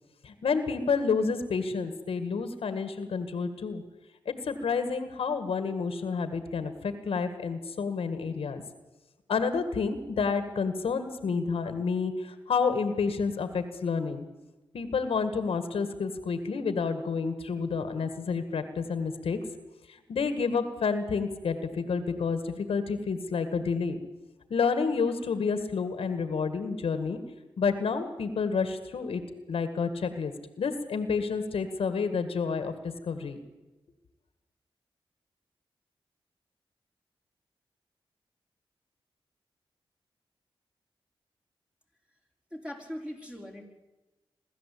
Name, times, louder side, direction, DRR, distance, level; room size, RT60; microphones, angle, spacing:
voice 1, 0.2-3.8 4.3-8.6 9.3-14.2 14.7-19.4 20.1-24.0 24.5-27.2 27.6-29.2 29.5-33.4, left 5 dB, 85° left, 10 dB, 1.9 m, -29 dB
voice 2, 42.5-43.6, equal, 10° right, 1 dB, 5.0 m, -40 dB
24.0 x 13.0 x 8.6 m, 1.1 s
cardioid pair, 65°, 9 cm